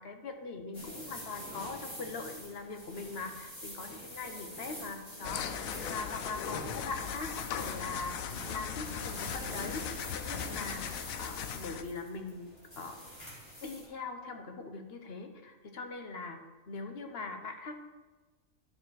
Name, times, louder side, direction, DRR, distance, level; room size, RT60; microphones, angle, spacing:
voice 1, 0.0-8.2 8.5-13.0 13.6-16.4 16.7-17.7, left 3 dB, 50° left, 5 dB, 1.1 m, -41 dB
sound 1, 0.7-13.8, equal, 30° left, 2.8 m, -45 dB
sound 2, 5.2-11.8, left 8 dB, 85° left, 1.0 m, -38 dB
12.0 x 5.2 x 4.7 m, 1.2 s
omnidirectional pair, 1.4 m